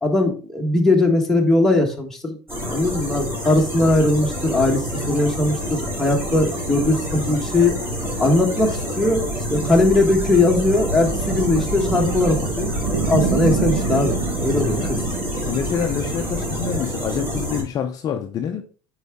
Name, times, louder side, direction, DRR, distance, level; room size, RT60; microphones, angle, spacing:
voice 1, 0.0-2.4 2.6-7.7 8.2-12.7 13.1-15.0, left 2 dB, 5° left, 1.3 m, -19 dB
sound 1, 2.5-17.6, equal, 20° right, 3.2 m, -28 dB
sound 2, 9.0-17.1, right 4 dB, 80° right, 1.5 m, -28 dB
voice 2, 14.5-15.0 15.4-18.6, left 8 dB, 30° left, 0.6 m, -27 dB
8.2 x 4.8 x 3.5 m
cardioid pair, 155°, 12 cm